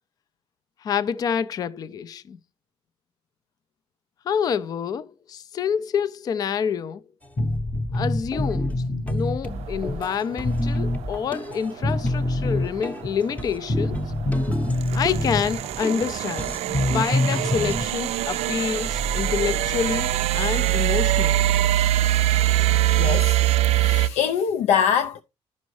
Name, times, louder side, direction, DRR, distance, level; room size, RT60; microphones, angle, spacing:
voice 1, 0.8-2.4 4.3-7.0 7.9-8.8 9.0-14.1 14.9-21.5, left 7 dB, 35° left, 0.4 m, -27 dB
sound 1, 7.4-17.8, left 1 dB, 15° left, 0.7 m, -26 dB
sound 2, 9.5-24.1, right 13 dB, 70° right, 0.4 m, -23 dB
voice 2, 22.9-25.2, left 8 dB, 90° left, 0.5 m, -24 dB
12.5 x 5.3 x 3.1 m
cardioid pair, 150°, 11 cm